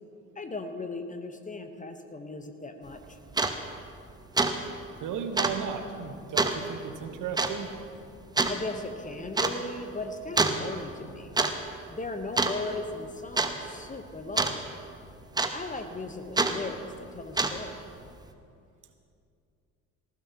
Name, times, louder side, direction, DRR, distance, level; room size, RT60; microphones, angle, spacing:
voice 1, 0.4-3.2 8.4-11.3 11.9-14.6 15.5-16.8 17.1-17.7, left 2 dB, 20° left, 7 dB, 1.1 m, -37 dB
sound 1, 2.9-3.0 3.3-3.6 3.9-4.1 4.4-4.6 4.8-4.9 5.4-5.6 6.4-6.6 7.4-7.6 8.4-8.6 9.4-9.6 10.4-10.6 11.2-11.5 11.8-12.1 12.4-12.9 13.4-13.5 14.4-14.6 15.4-15.8 16.4-16.6 17.2-17.7, right 3 dB, 10° right, 0.9 m, -25 dB
voice 2, 5.0-7.7, right 7 dB, 50° right, 7 dB, 1.2 m, -35 dB
19.0 x 15.0 x 3.0 m, 2.5 s
hypercardioid pair, 60°, 40 cm